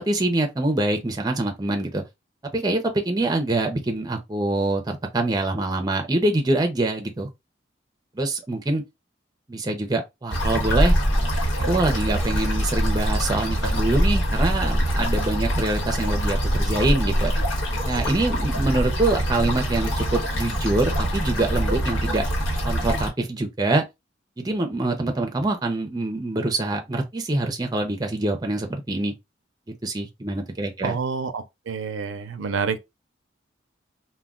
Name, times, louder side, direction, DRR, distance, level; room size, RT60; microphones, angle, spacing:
voice 1, 0.0-2.0 2.5-7.3 8.2-8.8 9.5-10.9 11.6-17.3 17.8-22.3 22.6-23.8 24.4-29.1 29.8-31.0, right 2 dB, 20° right, 0.5 m, -25 dB
sound 1, 10.3-23.1, equal, 90° left, 1.2 m, -24 dB
voice 2, 30.8-32.8, right 5 dB, 85° right, 0.5 m, -28 dB
2.2 x 2.2 x 3.6 m
head